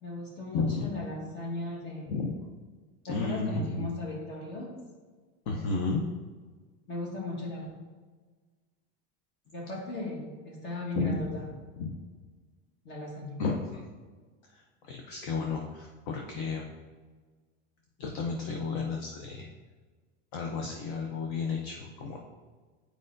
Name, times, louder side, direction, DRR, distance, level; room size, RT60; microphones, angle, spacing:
voice 1, 0.0-2.2 3.1-4.7 6.9-7.7 9.5-11.4 12.8-13.3, left 2 dB, 35° left, -1 dB, 1.5 m, -37 dB
voice 2, 0.5-0.9 2.1-2.3 3.1-3.9 5.5-6.0 10.9-11.2 11.8-11.9 13.4-13.8 14.4-16.7 18.0-19.5 20.3-22.2, left 4 dB, 55° left, 1 dB, 0.7 m, -32 dB
7.7 x 4.9 x 2.6 m, 1.4 s
supercardioid pair, 165°, 32 cm